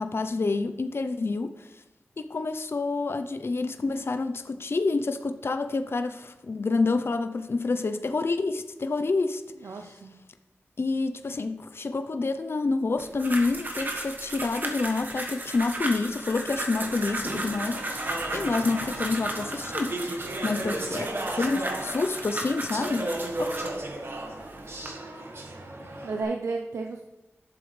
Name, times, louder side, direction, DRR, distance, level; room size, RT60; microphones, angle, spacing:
voice 1, 0.0-1.7 2.2-9.4 9.8-9.9 10.8-20.0 20.4-23.1 23.4-23.6, left 3 dB, 55° left, 8 dB, 0.7 m, -28 dB
voice 2, 9.5-10.1 26.0-27.0, right 3 dB, 80° right, 3 dB, 0.7 m, -32 dB
sound 1, 13.0-23.8 24.4-24.9, right 1 dB, 40° right, 1.6 m, -35 dB
Speech / Chatter, 16.8-26.2, right 1 dB, 60° right, 1.7 m, -35 dB
11.0 x 7.1 x 3.3 m, 0.99 s
cardioid pair, 50°, 5 cm